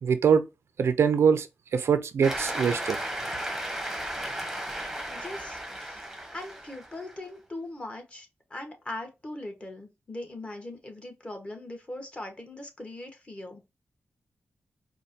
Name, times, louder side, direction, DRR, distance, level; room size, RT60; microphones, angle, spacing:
voice 1, 0.0-0.4 0.8-1.5 1.7-3.0, right 7 dB, 80° right, 0.4 m, -23 dB
Cheering / Applause, 2.2-7.1, right 1 dB, 5° right, 0.9 m, -35 dB
voice 2, 5.1-13.6, left 1 dB, 25° left, 1.2 m, -40 dB
4.3 x 2.2 x 2.7 m
cardioid pair, 85°, 4 cm